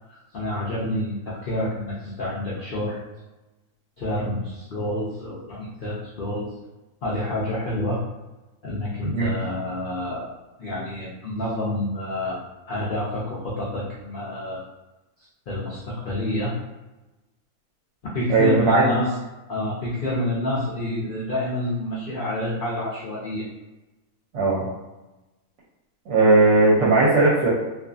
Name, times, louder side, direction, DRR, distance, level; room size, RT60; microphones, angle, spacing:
voice 1, 0.1-3.0 4.0-6.5 7.0-8.0 8.6-10.3 10.6-14.6 15.2-16.5 18.1-19.2 19.5-23.4, left 1 dB, 80° left, -6 dB, 0.4 m, -28 dB
voice 2, 18.3-18.9 24.3-24.7 26.1-27.5, right 2 dB, 70° right, -7 dB, 1.0 m, -17 dB
2.5 x 2.4 x 2.3 m, 1.1 s
omnidirectional pair, 1.5 m